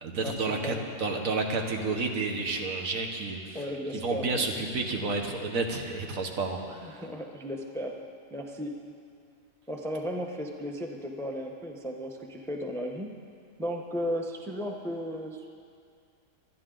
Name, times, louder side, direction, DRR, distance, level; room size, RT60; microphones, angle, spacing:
voice 1, 0.0-3.6 3.9-7.0, right 3 dB, 75° right, 3 dB, 1.6 m, -31 dB
voice 2, 3.5-4.4 6.8-7.9 8.3-8.7 9.7-13.1 13.6-15.5, equal, 5° left, 2 dB, 0.7 m, -35 dB
24.5 x 10.0 x 3.9 m, 2.3 s
omnidirectional pair, 1.5 m